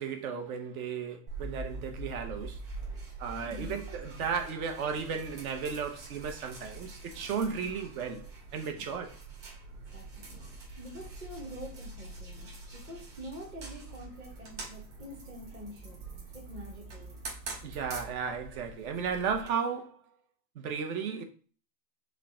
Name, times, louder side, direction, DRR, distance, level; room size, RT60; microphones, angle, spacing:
voice 1, 0.0-2.6 3.2-8.3 8.5-9.2 17.6-20.0 20.5-21.2, right 6 dB, 60° right, 1.1 m, -34 dB
sound 1, 1.3-19.5, right 3 dB, 30° right, 1.8 m, -44 dB
voice 2, 3.4-3.8 8.8-9.1 9.9-10.3 10.8-17.2, equal, 10° right, 0.5 m, -46 dB
5.1 x 2.3 x 4.2 m
supercardioid pair, 160°, 48 cm